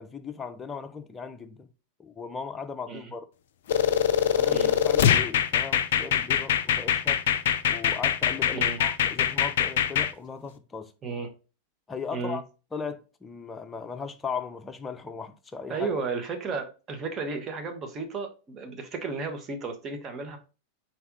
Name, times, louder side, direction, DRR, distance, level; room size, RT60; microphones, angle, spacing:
voice 1, 0.0-1.7 2.0-3.3 4.3-7.2 7.7-10.9 11.9-12.4 12.7-15.9, left 5 dB, 15° left, 0.6 m, -37 dB
sound 1, 3.7-10.1, left 9 dB, 60° left, 0.4 m, -23 dB
voice 2, 15.7-20.4, right 4 dB, 30° right, 1.0 m, -33 dB
4.1 x 3.5 x 3.6 m
figure-of-eight pair, 90°, 0 cm